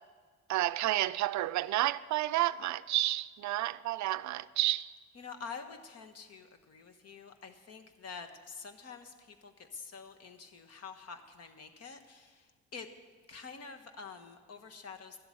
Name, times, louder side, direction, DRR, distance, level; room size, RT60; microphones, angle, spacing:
voice 1, 0.5-4.9, right 15 dB, 70° right, 0.4 m, -30 dB
voice 2, 5.2-12.4 12.7-12.9 13.3-15.2, left 5 dB, 55° left, 1.3 m, -47 dB
12.5 x 7.9 x 8.6 m
cardioid pair, 90°, 30 cm